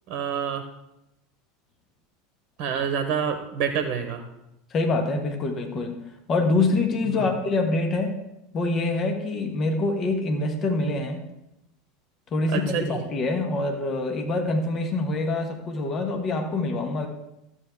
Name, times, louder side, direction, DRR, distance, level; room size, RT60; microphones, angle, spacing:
voice 1, 0.1-0.6 2.6-4.2 7.1-7.3 12.5-13.0, right 7 dB, 50° right, 8 dB, 1.1 m, -27 dB
voice 2, 4.7-5.9 6.3-8.1 8.5-11.2 12.3-17.1, left 2 dB, 35° left, 4 dB, 1.6 m, -25 dB
13.0 x 8.4 x 3.7 m, 0.88 s
figure-of-eight pair, 80°, 0 cm